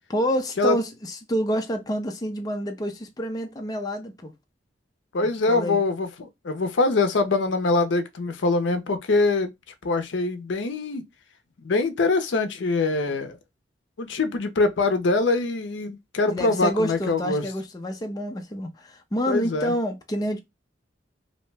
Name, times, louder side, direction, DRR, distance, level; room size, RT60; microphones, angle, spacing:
voice 1, 0.1-4.3 5.5-5.8 16.3-20.4, equal, 20° left, 0.4 m, -28 dB
voice 2, 5.1-9.5 9.8-11.0 11.6-13.4 14.0-17.4 19.3-19.7, left 3 dB, 70° left, 0.5 m, -23 dB
2.7 x 2.1 x 3.1 m
head